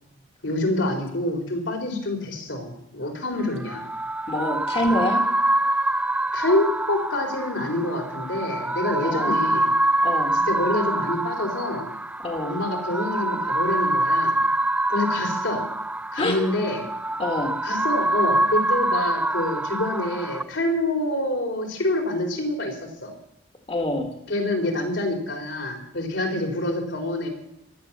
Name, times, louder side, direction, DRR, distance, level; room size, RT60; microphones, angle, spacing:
voice 1, 0.4-3.9 6.3-9.7 10.3-11.9 12.4-14.4 14.9-15.6 16.1-16.8 17.6-22.8 23.0-23.1 24.3-27.3, left 1 dB, 75° left, 1 dB, 4.2 m, -26 dB
sound 1, 3.4-20.4, right 1 dB, 5° right, 0.5 m, -25 dB
voice 2, 4.3-5.2 9.0-9.3 10.0-10.3 12.2-12.6 16.2-16.4 17.2-17.6 23.7-24.1, left 1 dB, 30° left, 4 dB, 1.8 m, -26 dB
16.0 x 12.0 x 7.4 m, 0.83 s
head